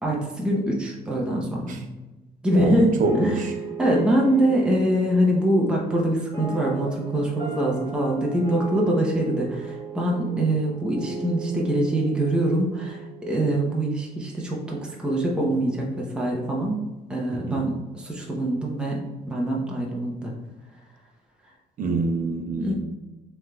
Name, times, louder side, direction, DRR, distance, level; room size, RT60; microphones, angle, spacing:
voice 1, 0.0-1.8 2.4-2.9 3.2-3.4 3.8-16.8 17.1-19.0 19.3-20.3 22.5-22.7, right 1 dB, 5° right, -2 dB, 0.8 m, -24 dB
voice 2, 2.5-3.5 17.3-17.7 21.8-22.7, right 3 dB, 50° right, 4 dB, 0.8 m, -26 dB
sound 1, 3.0-14.1, right 4 dB, 25° right, 1.5 m, -37 dB
6.3 x 3.3 x 2.3 m, 1.1 s
cardioid pair, 110°, 17 cm